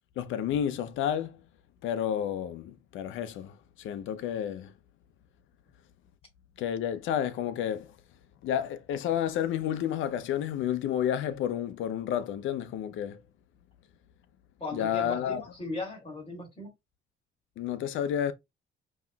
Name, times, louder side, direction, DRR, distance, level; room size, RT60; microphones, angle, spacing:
voice 1, 0.2-1.4 1.8-4.7 6.6-8.0 8.4-13.2 14.7-15.4 17.6-18.3, left 10 dB, 85° left, 0.6 m, -31 dB
voice 2, 14.6-16.7, left 2 dB, 30° left, 2.5 m, -37 dB
5.4 x 3.0 x 2.3 m
cardioid pair, 90°, 20 cm